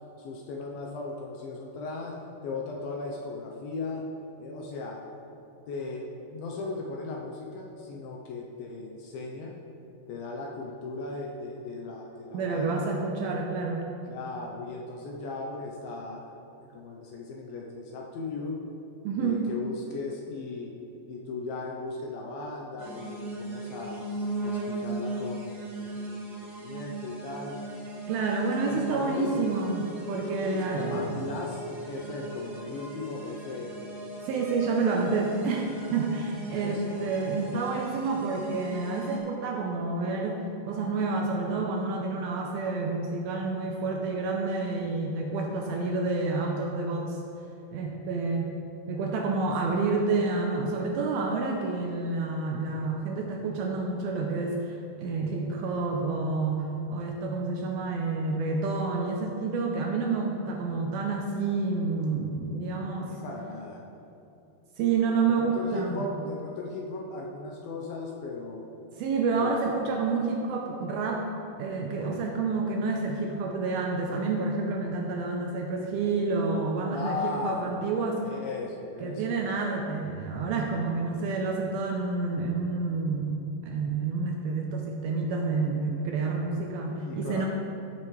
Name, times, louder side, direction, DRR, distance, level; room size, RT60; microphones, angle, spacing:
voice 1, 0.2-2.2 2.4-4.1 4.4-5.0 5.7-9.6 10.1-12.9 14.1-18.6 19.2-20.7 21.1-24.1 24.4-25.9 26.2-27.6 28.7-29.5 30.5-33.8 36.5-37.3 63.0-63.8 65.3-68.7 69.4-69.8 76.9-77.8 78.2-79.2 87.1-87.5, left 3 dB, 75° left, -1 dB, 2.3 m, -37 dB
voice 2, 12.3-13.9 19.0-19.4 28.1-31.2 34.3-40.4 40.7-47.2 47.7-48.5 48.9-63.1 64.8-66.1 69.0-71.3 71.6-78.2 79.0-83.4 83.6-87.5, right 3 dB, 80° right, 1 dB, 2.3 m, -29 dB
sound 1, 22.8-39.2, right 2 dB, 30° right, 2.2 m, -37 dB
15.0 x 7.7 x 3.2 m, 2.7 s
omnidirectional pair, 4.9 m